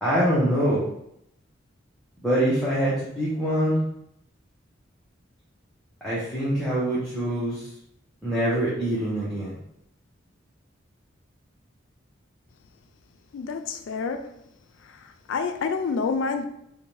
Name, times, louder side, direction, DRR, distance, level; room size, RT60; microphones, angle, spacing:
voice 1, 0.0-0.9 2.2-3.8 6.0-7.7 8.2-9.5, right 1 dB, ahead, -10 dB, 0.6 m, -24 dB
voice 2, 13.3-14.3 15.3-16.4, left 5 dB, 75° left, 7 dB, 0.3 m, -27 dB
2.6 x 2.2 x 3.0 m, 0.76 s
head